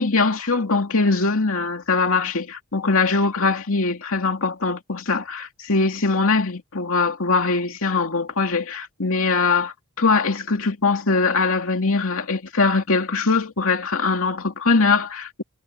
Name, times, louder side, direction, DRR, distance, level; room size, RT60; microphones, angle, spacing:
voice 1, 0.0-15.4, left 4 dB, 65° left, 2.6 m, -22 dB
head